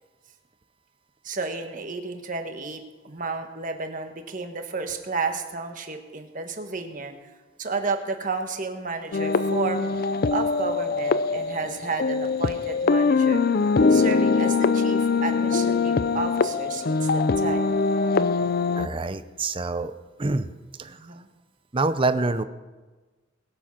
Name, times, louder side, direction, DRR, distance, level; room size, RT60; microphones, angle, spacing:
voice 1, 1.2-7.1 7.6-9.9 10.3-13.4 13.9-17.8 20.8-21.3, right 3 dB, 40° right, 5 dB, 1.4 m, -32 dB
sound 1, 9.1-18.9, left 4 dB, 50° left, 0.5 m, -22 dB
voice 2, 18.7-19.9 20.2-20.5 20.8-21.0 21.7-22.4, right 3 dB, 25° right, 11 dB, 0.6 m, -26 dB
21.0 x 7.5 x 5.9 m, 1.3 s
head